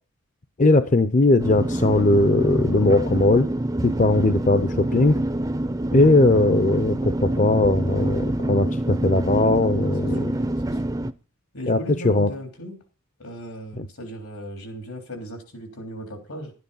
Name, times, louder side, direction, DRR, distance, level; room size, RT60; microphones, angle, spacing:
voice 1, 0.6-3.5 3.8-5.2 5.9-10.3 11.7-11.8 12.0-12.3 13.8-13.9, left 2 dB, 35° left, 0.6 m, -19 dB
sound 1, 1.4-11.1, right 1 dB, 15° right, 0.5 m, -26 dB
voice 2, 10.2-11.1 11.5-12.8 13.2-16.5, equal, 80° left, 3.5 m, -37 dB
12.5 x 9.5 x 5.5 m
head